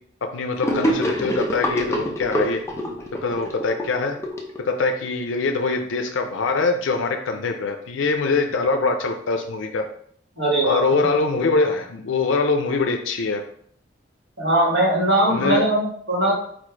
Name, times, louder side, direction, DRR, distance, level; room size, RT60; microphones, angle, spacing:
voice 1, 0.3-2.6 3.2-4.2 4.7-9.8 10.6-13.4 15.3-15.7, left 3 dB, 90° left, 5 dB, 0.5 m, -23 dB
Gurgling / Sink (filling or washing), 0.6-5.1, equal, 15° left, 0.7 m, -26 dB
voice 2, 10.4-10.8 14.4-16.3, right 1 dB, 75° right, -6 dB, 1.5 m, -20 dB
4.3 x 2.5 x 4.4 m, 0.63 s
head